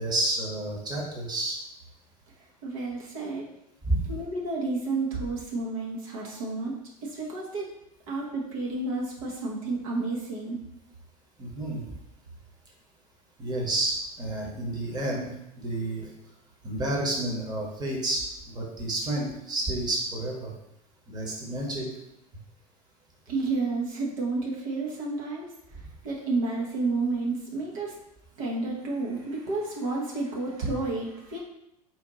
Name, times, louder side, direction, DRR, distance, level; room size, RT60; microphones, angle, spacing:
voice 1, 0.0-1.5 3.8-4.0 11.4-11.8 13.4-16.1 16.6-18.2 18.5-20.5 21.1-21.9, right 1 dB, 20° right, -2 dB, 1.1 m, -30 dB
voice 2, 2.6-3.5 4.1-7.7 8.1-10.6 23.3-25.5 26.0-28.0 28.4-31.4, right 3 dB, 60° right, -3 dB, 1.0 m, -31 dB
4.4 x 2.6 x 3.9 m, 0.83 s
figure-of-eight pair, 80°, 20 cm